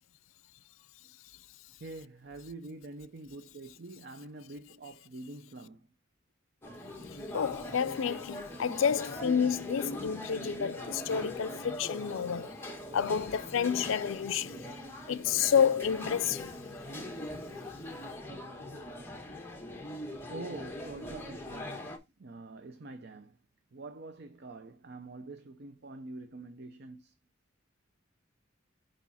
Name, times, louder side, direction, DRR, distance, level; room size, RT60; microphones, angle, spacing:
voice 1, 1.8-5.9 18.8-19.0 20.3-21.8 22.2-23.4 23.7-27.1, right 2 dB, 55° right, 0.7 m, -45 dB
sound 1, 6.6-22.0, left 1 dB, 10° left, 1.4 m, -41 dB
voice 2, 7.3-12.5 12.9-14.6 15.1-16.5, left 7 dB, 85° left, 0.4 m, -29 dB
6.3 x 5.0 x 4.1 m
head